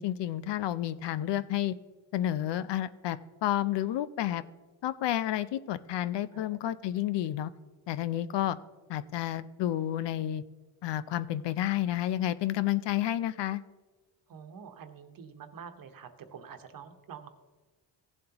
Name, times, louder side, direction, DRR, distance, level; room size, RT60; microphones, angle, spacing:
voice 1, 0.0-1.7 2.1-4.4 4.8-7.5 7.9-8.6 8.9-10.4 10.8-13.6, left 12 dB, 65° left, 15 dB, 0.6 m, -30 dB
voice 2, 14.3-17.3, right 7 dB, 45° right, 8 dB, 1.1 m, -47 dB
16.5 x 7.6 x 2.9 m, 1.3 s
cardioid pair, 110°, 47 cm